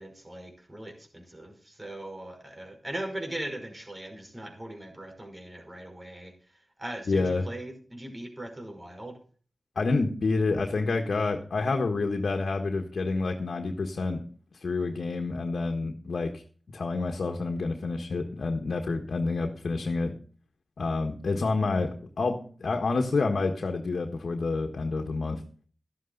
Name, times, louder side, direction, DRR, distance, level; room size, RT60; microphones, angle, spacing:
voice 1, 0.0-9.2, right 1 dB, 25° right, 4 dB, 5.4 m, -40 dB
voice 2, 7.1-7.5 9.7-14.2 14.6-16.4 16.7-20.2 20.8-25.4, left 3 dB, 70° left, 4 dB, 1.5 m, -28 dB
13.0 x 11.5 x 4.0 m, 0.41 s
cardioid pair, 45°, 0 cm